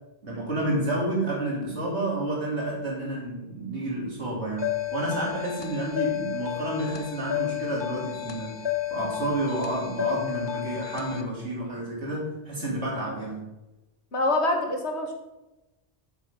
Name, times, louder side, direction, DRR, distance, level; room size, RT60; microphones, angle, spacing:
voice 1, 0.2-8.6 8.9-13.5, right 1 dB, 80° right, -4 dB, 3.1 m, -30 dB
sound 1, 4.6-11.2, left 13 dB, 30° left, 0.5 m, -32 dB
voice 2, 14.1-15.1, left 2 dB, 75° left, 2 dB, 1.7 m, -25 dB
9.5 x 6.9 x 3.5 m, 1.0 s
omnidirectional pair, 1.1 m